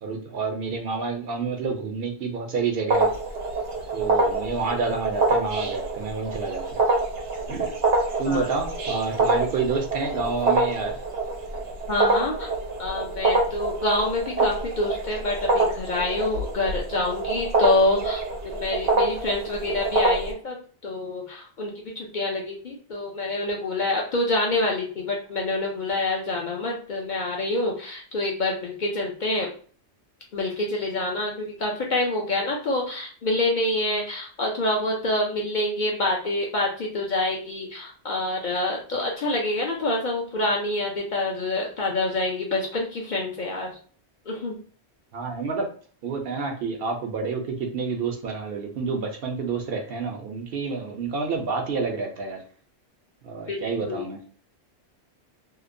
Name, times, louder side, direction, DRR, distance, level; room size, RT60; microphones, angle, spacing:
voice 1, 0.0-3.1 3.9-6.6 7.5-7.7 8.2-11.0 45.1-45.7 46.0-52.4 53.2-54.2, right 4 dB, 65° right, 0.7 m, -28 dB
sound 1, 2.9-20.3, right 2 dB, 90° right, 0.9 m, -25 dB
voice 2, 11.9-12.5 12.8-20.6 20.8-29.5 30.3-43.7 44.3-44.6 53.5-53.6 53.8-54.0, left 2 dB, 55° left, 0.6 m, -26 dB
2.8 x 2.0 x 2.5 m
omnidirectional pair, 1.1 m